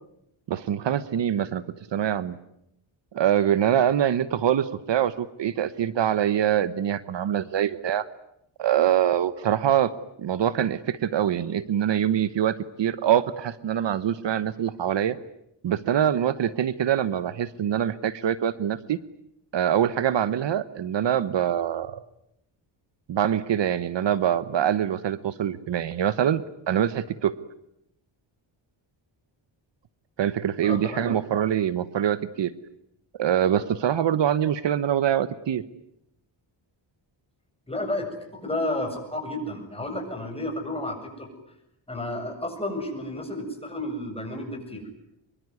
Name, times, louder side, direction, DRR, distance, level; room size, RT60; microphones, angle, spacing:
voice 1, 0.5-1.6 1.9-2.4 3.1-8.0 8.6-9.9 10.2-15.2 15.6-19.0 19.5-22.0 23.1-27.3 30.2-32.5 33.2-35.6, right 10 dB, 65° right, 15 dB, 1.1 m, -24 dB
voice 2, 30.6-31.1 37.7-41.3 41.9-44.8, left 1 dB, 10° left, 3 dB, 7.7 m, -31 dB
25.0 x 23.0 x 9.6 m, 0.79 s
wide cardioid pair, 130°, 48 cm